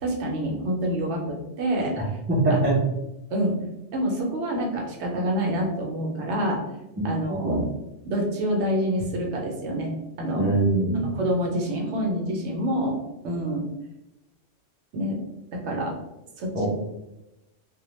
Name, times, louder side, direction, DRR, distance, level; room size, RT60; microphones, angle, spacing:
voice 1, 0.0-2.0 2.5-2.6 3.3-3.5 3.9-6.6 7.0-7.6 8.0-9.9 10.2-10.4 11.1-13.0 13.2-13.6 14.9-15.2 15.5-15.9 16.4-16.7, equal, 70° right, 1 dB, 0.8 m, -27 dB
voice 2, 2.3-2.8 7.3-7.6 10.4-11.1 16.5-16.7, right 2 dB, 20° right, -5 dB, 0.4 m, -22 dB
2.2 x 2.1 x 3.0 m, 0.93 s
omnidirectional pair, 1.3 m